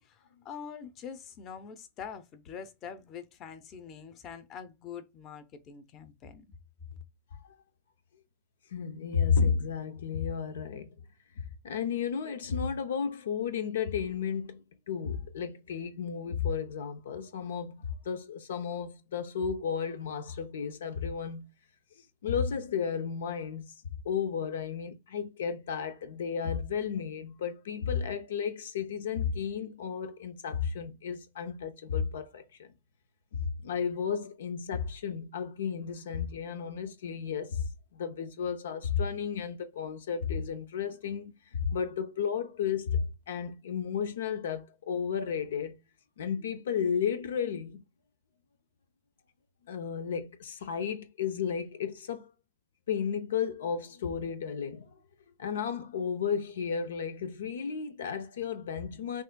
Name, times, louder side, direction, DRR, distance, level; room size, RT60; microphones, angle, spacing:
voice 1, 0.0-6.4, left 7 dB, 35° left, 0.8 m, -44 dB
voice 2, 8.7-11.0 11.4-21.5 22.0-23.7 24.0-32.7 33.3-45.8 46.2-47.8 49.7-52.3 52.9-55.0 55.4-59.2, left 7 dB, 80° left, 0.6 m, -33 dB
6.2 x 2.5 x 2.2 m
hypercardioid pair, 125°, 0 cm